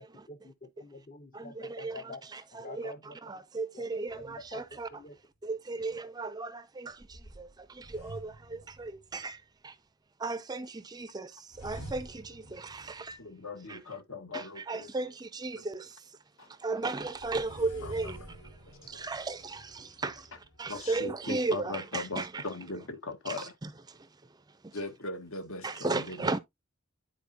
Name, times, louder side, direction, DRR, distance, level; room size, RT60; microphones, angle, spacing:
voice 1, 0.0-2.2 2.5-3.2 3.7-3.8 4.2-5.2, left 2 dB, 35° left, 0.8 m, -47 dB
voice 2, 1.3-4.9 5.4-9.8 10.2-13.2 13.7-13.8 14.3-16.2 16.5-22.4 23.3-24.8 25.6-26.4, right 3 dB, 20° right, 0.5 m, -36 dB
sound 1, 4.1-5.1 7.0-9.3 11.5-13.7 17.0-21.7, right 1 dB, 90° left, 4.3 m, -49 dB
voice 3, 13.4-14.0 14.3-14.4 21.0-22.8 23.2-23.4 24.7-25.6 25.9-26.4, left 3 dB, 65° left, 1.5 m, -37 dB
10.5 x 4.3 x 2.8 m
head